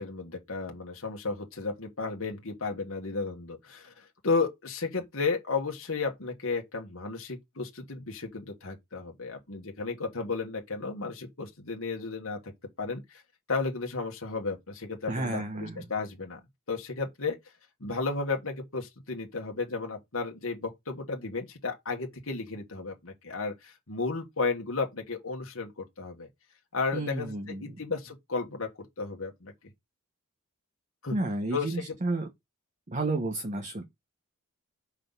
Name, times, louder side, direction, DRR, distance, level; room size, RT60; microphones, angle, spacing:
voice 1, 0.0-12.5 12.8-13.2 13.5-16.4 16.7-17.4 17.8-26.3 26.7-28.7 29.0-29.5 31.0-31.2 31.5-31.8, left 4 dB, 65° left, 1.5 m, -33 dB
voice 2, 15.1-15.9 26.9-27.8 31.1-32.3 32.9-33.8, right 2 dB, 35° right, 1.0 m, -31 dB
5.6 x 4.0 x 5.3 m
head